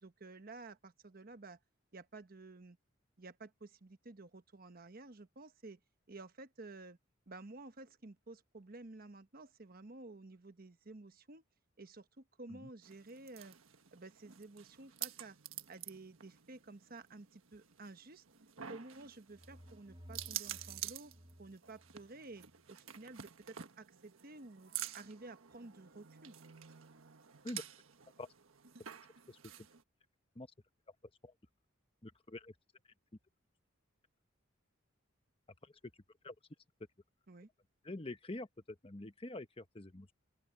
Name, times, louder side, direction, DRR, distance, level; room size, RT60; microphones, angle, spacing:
voice 1, 0.0-1.6 1.9-2.8 3.2-5.8 6.1-7.0 7.3-11.4 11.8-13.6 13.9-15.4 15.7-18.2 18.7-21.1 21.4-26.4 37.3-37.5, right 2 dB, 45° right, 1.1 m, -52 dB
sound 1, 12.8-29.8, right 11 dB, 85° right, 1.4 m, -49 dB
sound 2, 19.0-22.6, equal, 25° right, 3.0 m, -57 dB
voice 2, 32.0-32.5 35.6-35.7 36.2-36.3 37.8-40.1, left 2 dB, 25° left, 1.1 m, -46 dB
open air
head